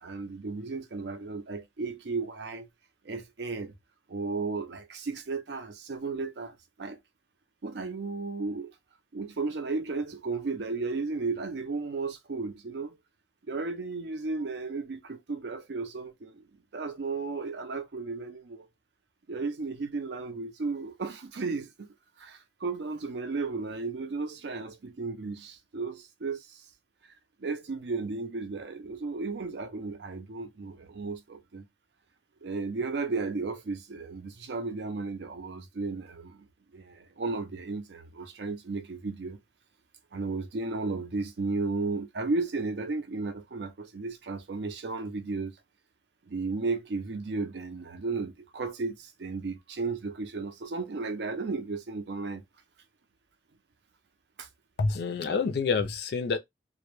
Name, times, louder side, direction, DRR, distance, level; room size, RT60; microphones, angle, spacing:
voice 1, 0.0-2.7 3.0-3.7 4.1-7.0 7.6-8.7 9.1-13.0 13.5-16.4 16.7-18.7 19.3-21.7 22.2-26.6 27.4-31.6 32.4-36.4 36.7-39.4 40.1-45.5 46.3-52.4 54.4-54.5, right 3 dB, 70° right, 0.5 m, -34 dB
voice 2, 54.8-56.4, left 4 dB, 60° left, 0.4 m, -27 dB
2.1 x 2.0 x 3.0 m
head